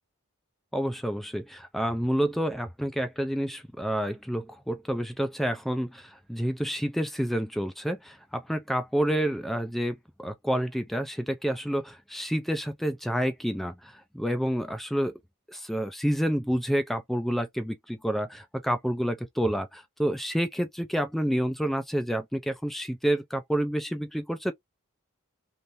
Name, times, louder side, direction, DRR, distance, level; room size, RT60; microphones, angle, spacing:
voice 1, 0.7-15.1 15.5-24.5, equal, ahead, 0.4 m, -29 dB
3.3 x 2.6 x 2.9 m
head